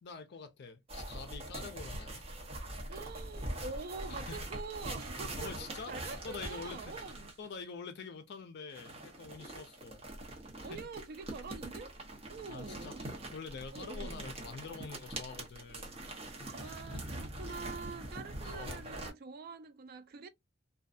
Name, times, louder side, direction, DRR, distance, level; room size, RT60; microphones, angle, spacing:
voice 1, 0.0-2.2 4.1-4.4 5.4-6.9 7.4-10.0 10.6-10.8 12.5-16.0 16.6-17.0 18.4-18.9, left 5 dB, 55° left, 0.4 m, -46 dB
sound 1, 0.9-7.5 8.7-19.1, right 1 dB, 30° right, 0.8 m, -43 dB
voice 2, 2.9-5.5 5.9-7.3 9.4-9.6 10.6-12.0 12.3-13.0 13.7-14.2 16.4-20.3, right 4 dB, 50° right, 0.3 m, -45 dB
2.5 x 2.2 x 2.4 m
head